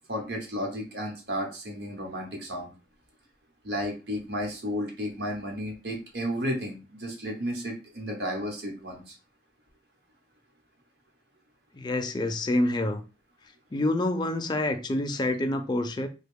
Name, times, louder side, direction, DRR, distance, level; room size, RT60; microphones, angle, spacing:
voice 1, 0.1-2.7 3.6-9.1, equal, 60° right, 1.0 m, -33 dB
voice 2, 11.7-13.0 13.7-16.1, left 1 dB, 25° left, 0.4 m, -27 dB
3.3 x 2.2 x 3.5 m
head